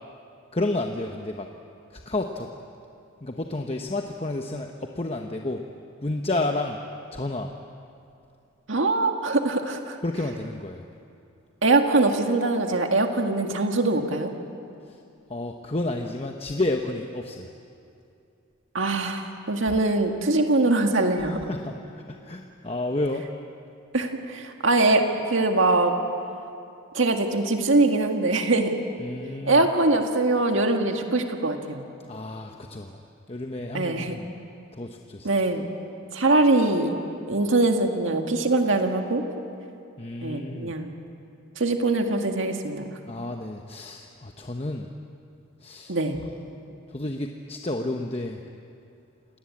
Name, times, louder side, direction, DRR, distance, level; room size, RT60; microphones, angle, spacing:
voice 1, 0.5-1.5 1.9-2.5 3.2-5.6 6.0-6.8 7.1-7.5 10.0-10.9 14.8-15.0 15.3-17.5 19.7-19.8 21.2-23.3 29.0-29.6 32.1-33.0 33.3-34.3 34.7-35.3 40.0-40.7 43.1-44.9 45.6-46.0 46.9-48.4, left 2 dB, 30° left, 3 dB, 1.0 m, -31 dB
voice 2, 8.7-10.0 11.6-14.3 18.7-21.4 23.9-25.9 26.9-28.8 29.5-31.8 33.7-34.2 35.2-35.6 36.1-36.9 37.3-39.3 40.2-40.9 41.6-42.9 45.9-46.2, right 2 dB, 75° right, 4 dB, 1.9 m, -22 dB
28.5 x 19.5 x 8.6 m, 2.6 s
head